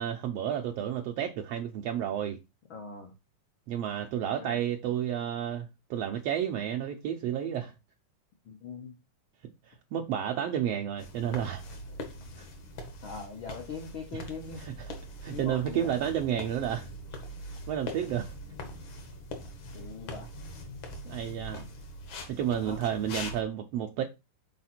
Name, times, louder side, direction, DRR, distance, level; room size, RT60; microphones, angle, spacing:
voice 1, 0.0-2.4 3.7-7.7 9.7-11.6 14.1-14.2 14.8-14.9 15.2-16.9 17.7-18.3 21.0-21.7 22.3-24.0, right 10 dB, 85° right, 1.4 m, -31 dB
voice 2, 2.7-3.1 4.2-4.6 8.4-8.9 13.0-14.7 15.3-16.0 19.7-20.3 22.5-22.8, left 5 dB, 85° left, 1.1 m, -41 dB
sound 1, 11.0-23.4, left 1 dB, 65° left, 1.3 m, -42 dB
6.6 x 4.2 x 4.3 m
omnidirectional pair, 3.8 m